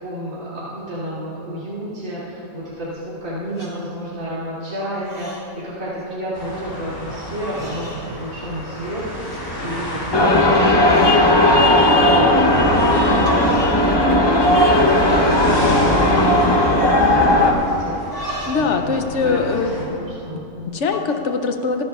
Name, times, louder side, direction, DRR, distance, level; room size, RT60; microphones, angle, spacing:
voice 1, 0.0-5.3 5.6-9.0 9.3-11.4 11.7-16.4 16.9-17.9 18.5-18.9 19.2-20.8, equal, 65° right, -10 dB, 3.5 m, -31 dB
sound 1, 2.9-3.2 3.5-3.7 4.2-4.5 4.8-5.5 5.8-6.1 6.8-6.9 7.4-8.0 8.4-8.9 9.3-9.4 10.0-10.1 10.5-11.2 11.6-11.9 12.9-13.0 13.3-13.9 14.2-14.8 15.1-15.2 15.4-15.7 16.2-17.5 17.9-18.8 19.0-20.3 20.8-21.2, equal, 35° right, 2.7 m, -36 dB
sound 2, 6.3-19.8, left 1 dB, 90° left, 4.1 m, -31 dB
sound 3, 10.1-17.5, left 1 dB, 20° left, 0.8 m, -15 dB
voice 2, 18.5-20.0 20.3-20.4 20.7-21.8, left 4 dB, 60° left, 6 dB, 1.0 m, -22 dB
26.0 x 11.0 x 2.4 m, 2.8 s
omnidirectional pair, 1.5 m